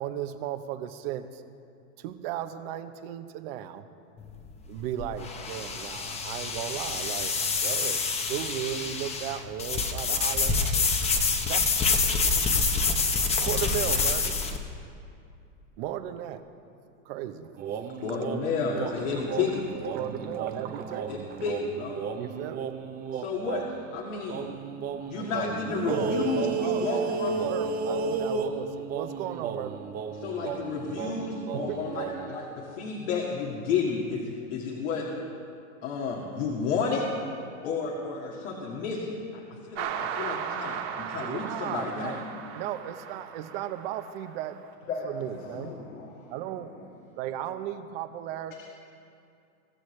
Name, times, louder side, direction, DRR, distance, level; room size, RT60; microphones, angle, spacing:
voice 1, 0.0-1.4 2.0-3.8 4.7-7.3 7.6-8.0 8.3-10.9 11.4-11.6 11.8-12.0 13.4-14.4 15.8-16.4 17.0-17.5 19.9-21.0 22.2-22.7 25.2-25.3 25.8-26.2 26.6-29.8 31.5-32.0 41.1-42.2 42.5-44.6 45.0-45.7 46.3-46.7 47.2-48.5, right 11 dB, 50° right, 9 dB, 1.0 m, -35 dB
sound 1, 4.2-14.6, left 4 dB, 15° left, 1.0 m, -27 dB
sound 2, 17.6-23.9 24.3-32.4, right 5 dB, 20° right, 0.8 m, -33 dB
voice 2, 18.0-19.6 21.1-22.0 23.1-23.6 23.9-24.5 25.1-27.3 30.2-35.0 35.8-37.1 37.6-42.2, left 5 dB, 65° left, -3 dB, 2.3 m, -31 dB
sound 3, 39.7-44.6, right 8 dB, 65° right, 1.9 m, -36 dB
voice 3, 45.5-46.1, left 5 dB, 85° left, -5 dB, 3.1 m, -36 dB
24.0 x 14.0 x 3.3 m, 2.5 s
supercardioid pair, 145°, 39 cm